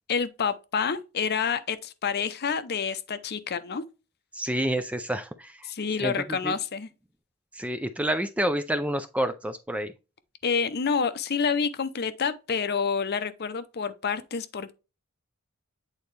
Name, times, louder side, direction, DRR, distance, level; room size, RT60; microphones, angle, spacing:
voice 1, 0.1-3.8 5.6-6.9 10.4-14.7, left 6 dB, 45° left, 0.6 m, -28 dB
voice 2, 4.3-5.7 6.0-6.5 7.5-9.9, right 1 dB, 5° right, 0.3 m, -29 dB
8.6 x 4.0 x 3.2 m
head